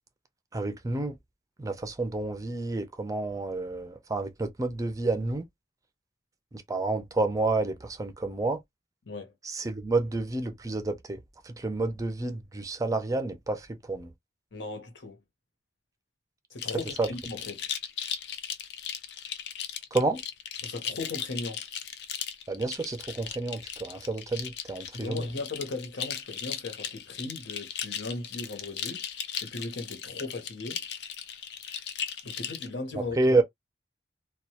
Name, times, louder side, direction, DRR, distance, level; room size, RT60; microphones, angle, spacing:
voice 1, 0.5-1.2 1.6-5.4 6.7-8.6 9.5-14.1 17.0-17.1 19.9-20.2 22.5-25.3 33.2-33.4, right 2 dB, 20° right, 0.4 m, -29 dB
voice 2, 14.5-15.2 16.5-17.7 20.6-21.6 24.9-29.0 29.4-30.8 32.2-33.2, left 3 dB, 85° left, 0.9 m, -37 dB
sound 1, 16.6-32.7, left 8 dB, 65° left, 0.4 m, -37 dB
2.2 x 2.1 x 2.7 m
head